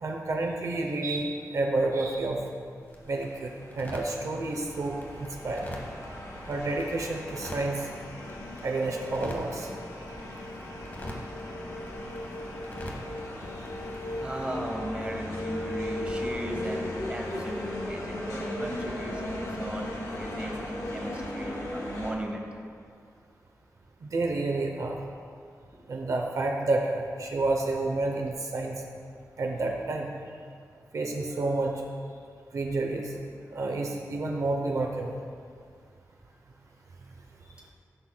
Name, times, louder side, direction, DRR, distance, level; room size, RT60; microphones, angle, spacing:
voice 1, 0.0-2.4 3.1-5.7 6.5-7.9 8.6-9.7 24.0-25.0 25.9-28.7 29.4-30.1 30.9-31.7 32.5-33.1 33.5-35.1, right 2 dB, 60° right, 1 dB, 0.7 m, -29 dB
sound 1, 2.3-14.5, left 1 dB, 30° left, 1.0 m, -46 dB
sound 2, 3.2-22.1, left 1 dB, 70° left, 1.5 m, -37 dB
voice 2, 14.2-22.5, right 1 dB, 20° right, 0 dB, 0.9 m, -37 dB
13.0 x 6.1 x 2.2 m, 2.2 s
wide cardioid pair, 160°, 6 cm